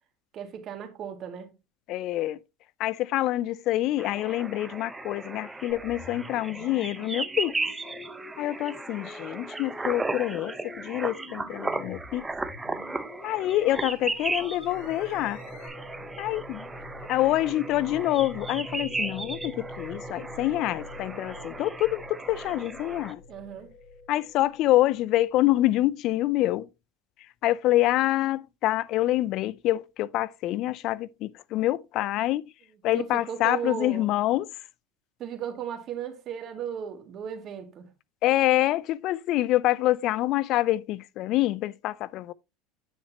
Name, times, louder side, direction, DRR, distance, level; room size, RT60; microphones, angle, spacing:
voice 1, 0.3-1.5 23.3-23.7 32.9-34.1 35.2-37.9, right 8 dB, 45° right, 2.2 m, -36 dB
voice 2, 1.9-2.4 2.8-7.6 8.4-12.3 13.2-15.4 16.2-16.7 17.1-23.2 24.1-26.7 27.4-32.5 32.8-34.5 38.2-42.3, left 15 dB, 55° left, 0.4 m, -26 dB
sound 1, 4.0-23.1, right 3 dB, 10° right, 0.8 m, -36 dB
sound 2, 5.7-15.7, left 4 dB, 75° left, 4.8 m, -47 dB
sound 3, 12.9-25.1, left 1 dB, 30° left, 3.6 m, -44 dB
9.7 x 6.4 x 2.8 m
supercardioid pair, 110°, 0 cm